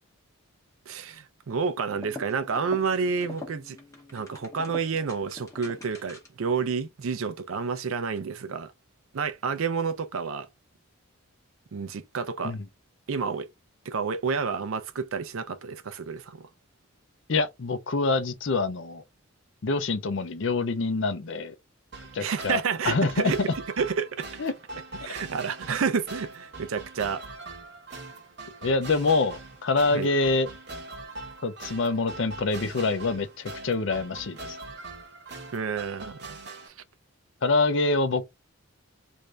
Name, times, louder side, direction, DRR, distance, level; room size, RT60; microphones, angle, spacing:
voice 1, 0.9-3.8 4.1-8.7 9.1-10.5 11.7-12.6 13.1-13.5 13.8-16.5 22.2-23.5 23.8-24.3 25.0-27.2 29.9-30.1 35.5-36.4 36.6-36.8, right 5 dB, 75° right, 0.5 m, -30 dB
sound 1, 1.9-6.5, left 2 dB, 15° left, 0.8 m, -44 dB
voice 2, 17.3-19.0 19.6-21.5 22.1-23.3 24.4-24.5 25.7-25.8 28.6-30.5 31.4-34.6 37.4-38.2, left 3 dB, 55° left, 0.5 m, -26 dB
sound 2, 21.9-36.7, right 2 dB, 50° right, 0.8 m, -42 dB
3.2 x 2.6 x 3.3 m
head